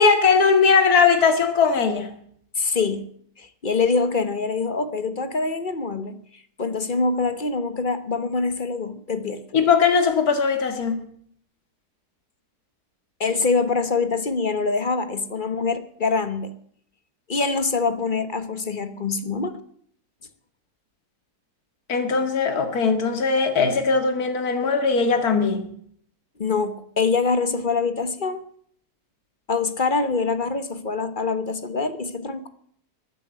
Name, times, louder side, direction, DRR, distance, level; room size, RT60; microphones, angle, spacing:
voice 1, 0.0-2.1 9.5-11.0 21.9-25.7, left 5 dB, 65° left, 7 dB, 2.4 m, -19 dB
voice 2, 2.6-3.1 3.4-6.2 6.6-9.4 13.2-16.5 17.3-19.6 26.4-28.4 29.5-32.4, left 4 dB, 35° left, 11 dB, 1.1 m, -24 dB
15.0 x 9.8 x 8.8 m, 0.63 s
omnidirectional pair, 1.7 m